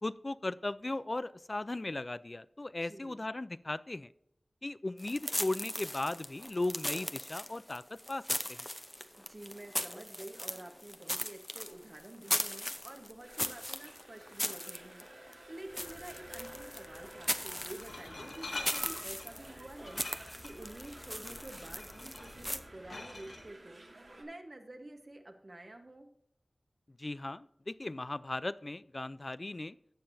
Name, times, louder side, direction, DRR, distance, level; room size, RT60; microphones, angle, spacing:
voice 1, 0.0-4.1 4.6-7.8 8.1-8.2 8.5-8.7 27.0-29.8, left 2 dB, 45° left, 17 dB, 0.4 m, -37 dB
voice 2, 2.8-3.2 9.2-26.1, right 1 dB, 45° right, 4 dB, 1.2 m, -49 dB
sound 1, 5.0-22.6, left 1 dB, 15° left, 0.7 m, -39 dB
sound 2, 13.2-24.2, right 1 dB, 75° right, 2.8 m, -53 dB
Glass, 15.6-23.4, left 2 dB, 85° left, 1.9 m, -48 dB
17.0 x 6.7 x 2.7 m, 0.78 s
wide cardioid pair, 60°, 0 cm